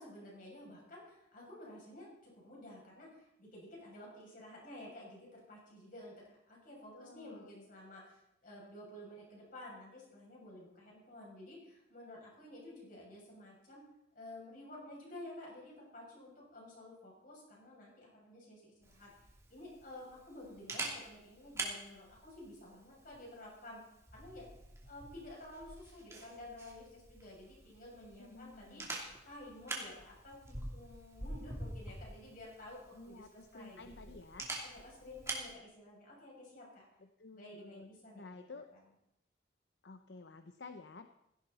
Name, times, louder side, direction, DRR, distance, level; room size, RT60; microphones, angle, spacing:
voice 1, 0.0-6.1 6.5-13.9 14.1-19.1 19.5-23.8 24.1-24.5 24.9-28.9 29.2-34.2 34.6-36.8 37.3-38.4, left 1 dB, 50° left, -3 dB, 7.3 m, -52 dB
voice 2, 6.9-7.7 28.2-28.9 32.9-34.5 37.0-37.9 38.1-38.7 39.8-41.1, left 3 dB, 75° left, 8 dB, 0.8 m, -52 dB
Camera, 18.8-35.5, right 2 dB, 15° right, 2.8 m, -47 dB
17.0 x 16.0 x 4.2 m, 0.82 s
head